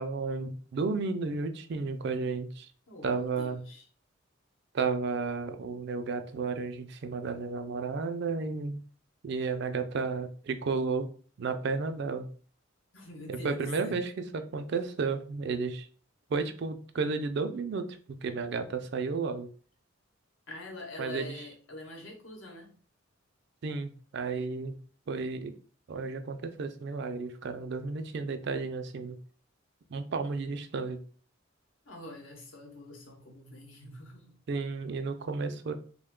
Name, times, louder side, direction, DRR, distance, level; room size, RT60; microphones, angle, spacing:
voice 1, 0.0-2.7 3.0-3.6 4.7-8.8 9.2-11.1 11.4-12.3 13.3-15.9 16.3-19.5 21.0-21.4 23.6-24.7 25.1-25.5 25.9-29.2 29.9-31.0 34.5-35.7, right 4 dB, 55° right, 7 dB, 0.4 m, -32 dB
voice 2, 2.9-3.8 12.9-14.0 20.5-22.7 31.8-34.4, left 1 dB, 70° left, 1 dB, 0.9 m, -44 dB
3.0 x 2.2 x 3.6 m, 0.42 s
head